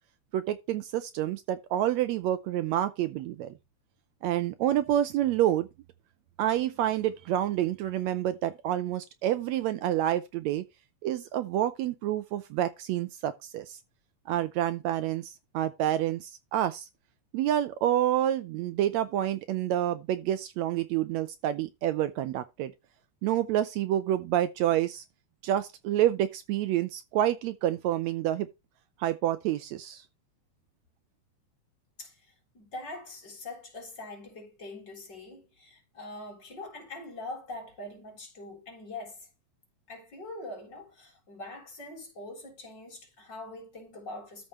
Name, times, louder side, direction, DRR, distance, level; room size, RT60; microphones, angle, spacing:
voice 1, 0.3-3.5 4.2-5.7 6.4-10.6 11.0-13.8 14.3-16.9 17.3-22.7 23.2-25.0 25.4-28.5 29.0-30.0, right 12 dB, 75° right, 1.8 m, -28 dB
voice 2, 32.0-39.3 39.9-44.5, left 2 dB, 35° left, 4.2 m, -43 dB
13.5 x 5.1 x 3.1 m
omnidirectional pair, 3.3 m